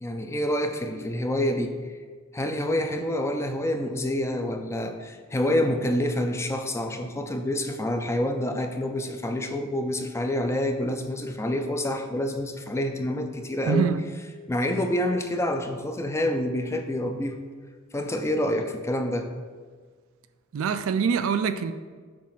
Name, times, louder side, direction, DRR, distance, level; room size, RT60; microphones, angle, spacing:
voice 1, 0.0-1.7 2.3-13.9 14.5-17.4 17.9-19.3, left 1 dB, 15° left, 0.4 m, -27 dB
voice 2, 13.7-14.0 20.5-21.7, right 6 dB, 70° right, 0.4 m, -24 dB
7.3 x 2.5 x 5.7 m
head